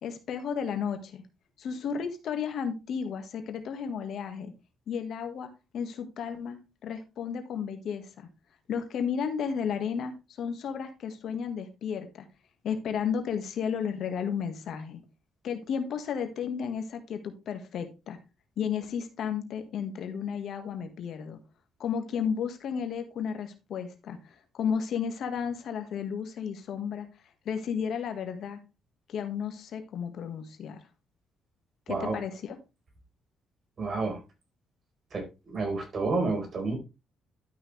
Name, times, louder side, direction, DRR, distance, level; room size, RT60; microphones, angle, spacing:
voice 1, 0.0-1.2 1.6-4.5 4.9-8.3 8.7-12.3 12.6-15.0 15.4-18.2 18.6-21.4 21.8-27.1 27.5-28.6 29.1-30.8 31.9-32.6, left 7 dB, 70° left, 7 dB, 1.7 m, -33 dB
voice 2, 33.8-34.2 35.1-36.8, right 3 dB, 45° right, 2 dB, 4.4 m, -30 dB
12.0 x 5.8 x 3.3 m, 0.27 s
cardioid pair, 90°, 0 cm